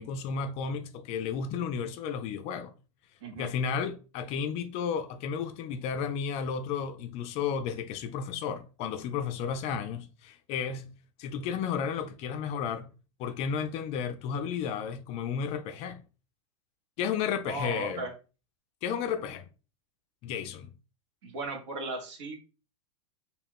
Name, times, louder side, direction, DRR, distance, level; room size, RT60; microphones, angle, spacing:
voice 1, 0.0-2.7 3.4-10.9 11.2-12.9 13.2-16.0 17.0-18.0 18.8-19.5 20.2-20.7, left 7 dB, 40° left, 0.4 m, -33 dB
voice 2, 17.5-18.1 21.2-22.4, right 2 dB, 65° right, 0.9 m, -36 dB
2.3 x 2.3 x 3.4 m
hypercardioid pair, 105°, 17 cm